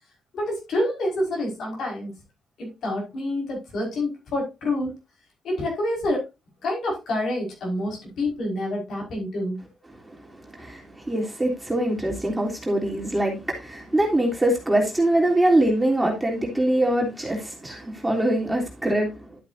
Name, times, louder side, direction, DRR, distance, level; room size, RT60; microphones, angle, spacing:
voice 1, 0.3-2.2 2.6-4.9 5.4-6.3 6.6-9.6, left 1 dB, 65° left, 5.5 m, -27 dB
voice 2, 10.5-19.3, right 1 dB, 10° right, 3.4 m, -23 dB
12.0 x 7.9 x 2.7 m
cardioid pair, 90°, 0 cm